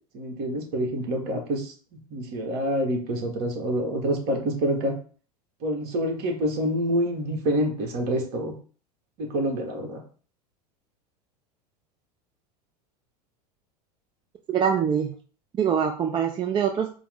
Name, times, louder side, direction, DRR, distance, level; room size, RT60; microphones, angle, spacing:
voice 1, 0.1-4.9 5.6-8.5 9.2-10.0, equal, 55° right, 2 dB, 1.3 m, -27 dB
voice 2, 14.5-15.1 15.6-17.0, right 7 dB, 25° right, 4 dB, 0.4 m, -24 dB
4.5 x 2.0 x 3.6 m, 0.40 s
hypercardioid pair, 90°, 20 cm